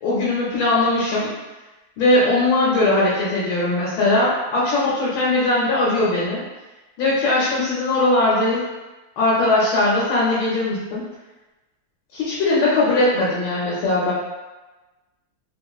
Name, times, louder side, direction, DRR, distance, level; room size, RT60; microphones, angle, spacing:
voice 1, 0.0-1.3 2.0-6.4 7.0-8.7 9.2-11.0 12.1-14.1, left 2 dB, 70° left, -7 dB, 1.5 m, -20 dB
3.8 x 2.9 x 2.3 m, 1.1 s
omnidirectional pair, 2.4 m